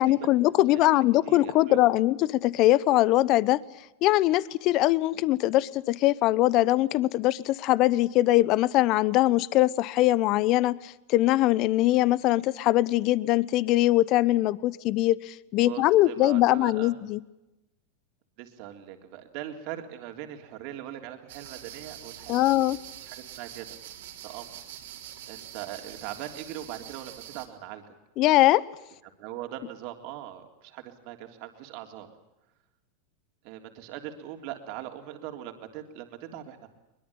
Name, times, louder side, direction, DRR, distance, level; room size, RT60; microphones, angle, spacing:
voice 1, 0.0-3.6 4.0-17.2 22.3-22.8 28.2-28.6, left 16 dB, 50° left, 20 dB, 0.9 m, -22 dB
voice 2, 0.7-1.8 15.6-17.0 18.4-23.7 24.2-24.6 25.3-27.9 29.2-32.1 33.4-36.7, right 12 dB, 60° right, 4 dB, 3.5 m, -41 dB
sound 1, 21.3-27.5, right 11 dB, 80° right, 3.9 m, -44 dB
23.0 x 22.0 x 8.7 m, 0.95 s
supercardioid pair, 120°, 0 cm